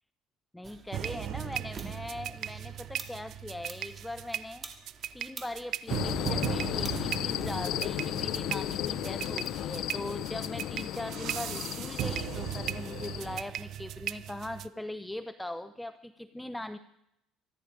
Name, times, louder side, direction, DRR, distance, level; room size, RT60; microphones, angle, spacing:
voice 1, 0.5-4.6 5.1-16.8, left 1 dB, 5° left, 11 dB, 0.5 m, -40 dB
sound 1, 0.6-9.9, right 4 dB, 30° right, 2.3 m, -50 dB
sound 2, 0.9-14.7, right 11 dB, 60° right, 0.5 m, -37 dB
sound 3, 5.9-13.4, left 13 dB, 65° left, 0.5 m, -34 dB
24.5 x 10.5 x 5.1 m, 0.85 s
cardioid pair, 115°, 0 cm